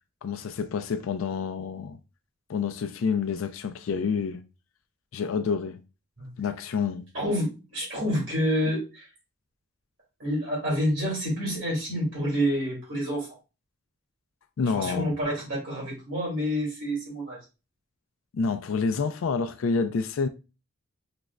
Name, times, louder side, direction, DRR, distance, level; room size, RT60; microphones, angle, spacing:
voice 1, 0.2-2.0 2.5-4.4 5.1-5.8 6.4-7.0 14.6-15.1 18.3-20.3, left 5 dB, 80° left, 0.4 m, -28 dB
voice 2, 7.1-9.0 10.2-13.3 14.7-17.4, equal, 70° right, 1.8 m, -28 dB
4.9 x 2.1 x 2.3 m
head